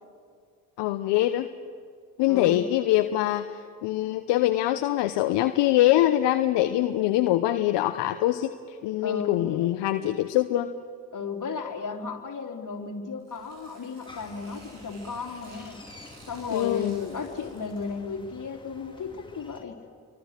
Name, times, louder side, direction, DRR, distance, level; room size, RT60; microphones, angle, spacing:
voice 1, 0.8-1.5 2.2-10.7 16.5-16.9, left 14 dB, 65° left, 9 dB, 1.1 m, -24 dB
voice 2, 2.3-2.6 9.0-9.5 11.1-15.8 16.3-19.8, left 5 dB, 40° left, 1 dB, 3.7 m, -34 dB
Tearing, 13.2-18.0, right 3 dB, 65° right, 7.8 m, -54 dB
sound 1, 14.1-19.6, left 2 dB, 10° left, 3.7 m, -49 dB
30.0 x 24.0 x 6.8 m, 2.1 s
hypercardioid pair, 55°, 45 cm